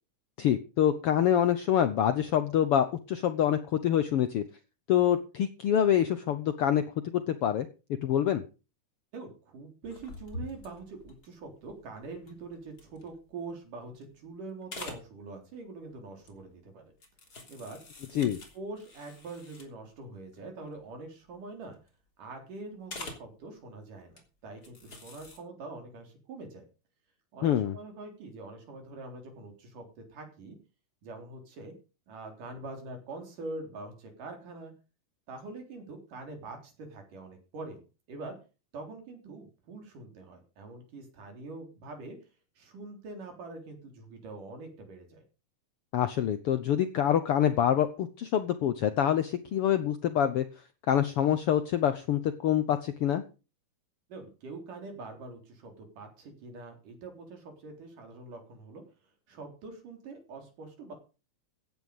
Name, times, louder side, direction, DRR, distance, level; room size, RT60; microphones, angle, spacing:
voice 1, 0.4-4.4 4.9-6.8 7.1-7.7 8.0-8.4 18.1-18.4 27.4-27.8 45.9-50.4 50.9-53.2, left 10 dB, 75° left, 11 dB, 1.3 m, -26 dB
voice 2, 9.1-16.9 17.5-17.8 18.1-18.3 18.5-21.8 22.2-26.7 27.3-30.6 31.0-31.7 32.1-34.7 35.3-37.8 38.1-38.4 38.7-42.2 42.6-45.2 54.1-58.8 59.3-60.9, right 3 dB, 80° right, 4 dB, 5.2 m, -44 dB
sound 1, 9.8-13.5 13.9-14.3 14.6-15.1 16.2-16.5 17.0-19.9 20.3-20.4 20.7-20.9 21.2-21.9 22.9-23.3 24.0-24.2 24.6-25.4, left 2 dB, 30° left, 3.4 m, -46 dB
15.5 x 9.4 x 5.3 m, 0.33 s
omnidirectional pair, 3.6 m